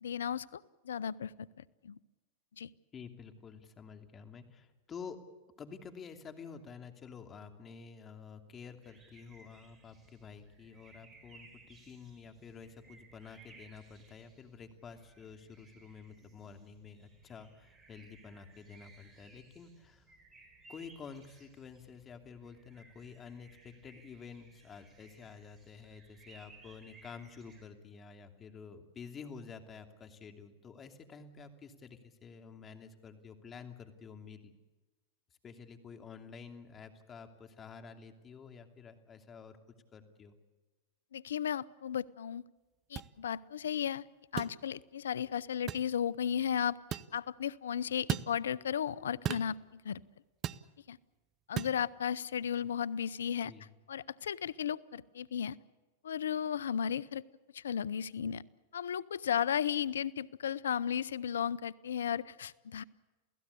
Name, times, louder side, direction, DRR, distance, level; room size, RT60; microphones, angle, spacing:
voice 1, 0.0-1.5 1.8-2.0 2.6-2.7 41.1-42.4 42.9-44.0 44.3-50.0 50.9-51.0 51.5-53.5 53.9-55.6 56.0-57.2 57.5-58.4 58.7-62.8, left 8 dB, 85° left, 21 dB, 0.7 m, -35 dB
voice 2, 2.9-5.2 5.6-20.1 20.7-34.5 35.4-40.3 53.4-53.7, left 6 dB, 25° left, 6 dB, 2.8 m, -50 dB
sound 1, 8.8-27.6, right 3 dB, 15° right, 6.0 m, -61 dB
soft metallic hits, 43.0-43.1 44.4-44.6 45.7-45.9 46.9-47.1 48.1-48.3 49.2-49.5 50.4-50.7 51.6-51.8, right 11 dB, 35° right, 0.8 m, -35 dB
29.0 x 16.5 x 8.4 m, 1.2 s
hypercardioid pair, 110°, 0 cm